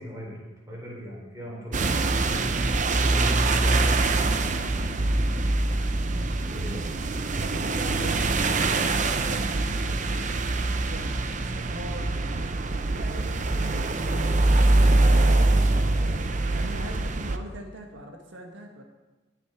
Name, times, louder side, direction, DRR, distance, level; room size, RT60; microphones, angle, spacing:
voice 1, 0.0-2.4 2.9-4.9 6.5-6.8 15.9-16.1, equal, 15° right, -4 dB, 4.2 m, -40 dB
sound 1, 1.7-17.4, right 2 dB, 40° right, 0.7 m, -24 dB
voice 2, 7.4-14.9 15.9-18.8, right 1 dB, 80° right, 2 dB, 1.4 m, -42 dB
19.5 x 6.7 x 4.6 m, 1.2 s
head